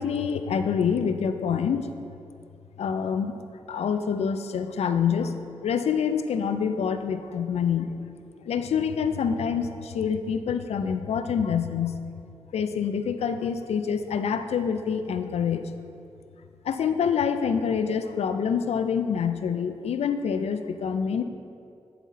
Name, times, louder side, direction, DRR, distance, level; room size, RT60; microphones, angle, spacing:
voice 1, 0.0-1.9 2.8-3.3 3.7-5.3 5.6-8.0 8.4-12.0 12.5-15.7 16.6-21.2, left 7 dB, 75° left, 9 dB, 0.4 m, -26 dB
10.0 x 4.1 x 4.1 m, 2.5 s
supercardioid pair, 40°, 11 cm